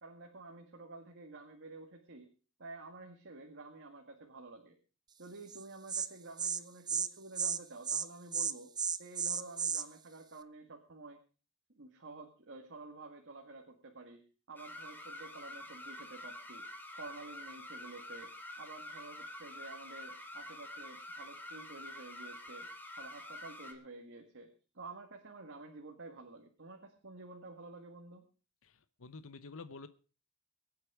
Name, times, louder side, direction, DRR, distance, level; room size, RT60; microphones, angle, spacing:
voice 1, 0.0-2.3 2.6-4.7 5.2-8.7 9.0-11.2 11.8-14.2 14.5-16.6 16.9-18.3 18.6-22.7 23.0-24.5 24.7-28.2, right 3 dB, 55° right, 3 dB, 1.9 m, -50 dB
Insect, 5.5-5.6 5.9-6.1 6.4-6.6 6.9-7.1 7.3-7.6 7.8-8.1 8.3-9.8, right 7 dB, 20° right, 0.6 m, -33 dB
sound 1, 14.6-23.7, left 1 dB, 10° left, 2.1 m, -47 dB
voice 2, 28.6-29.9, left 3 dB, 65° left, 13 dB, 0.9 m, -49 dB
22.5 x 8.6 x 4.8 m, 0.37 s
head